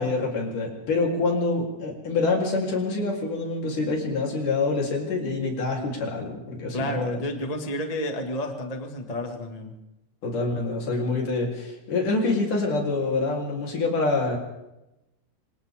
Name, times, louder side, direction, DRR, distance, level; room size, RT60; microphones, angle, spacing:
voice 1, 0.0-7.2 10.2-14.4, left 3 dB, 50° left, -1 dB, 5.1 m, -26 dB
voice 2, 6.7-9.8, left 1 dB, 30° left, 3 dB, 0.7 m, -31 dB
27.0 x 26.5 x 3.8 m, 0.95 s
omnidirectional pair, 4.8 m